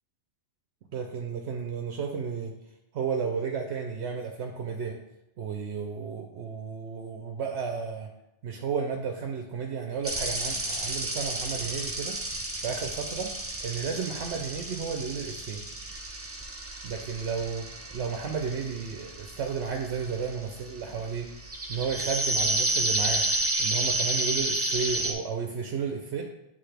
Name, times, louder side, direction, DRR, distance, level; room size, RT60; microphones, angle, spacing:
voice 1, 0.9-2.5 2.9-5.0 5.4-8.1 8.4-12.2 12.6-13.3 13.6-15.6 16.8-17.6 17.9-21.3 21.7-23.2 23.6-26.2, right 6 dB, 70° right, 2 dB, 0.9 m, -33 dB
sound 1, 10.0-25.1, right 1 dB, 20° right, 0.4 m, -31 dB
7.8 x 3.7 x 3.3 m, 0.85 s
omnidirectional pair, 1.2 m